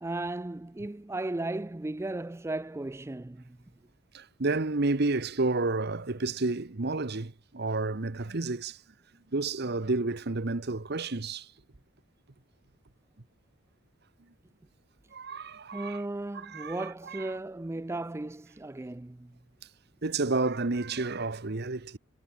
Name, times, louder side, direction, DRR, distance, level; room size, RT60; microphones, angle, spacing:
voice 1, 0.0-3.6 15.7-19.4, right 2 dB, 15° right, 0.4 m, -35 dB
voice 2, 4.1-8.8 9.3-11.5 15.1-16.0 16.4-16.8 17.1-17.2 20.0-22.0, right 3 dB, 55° right, 1.0 m, -30 dB
head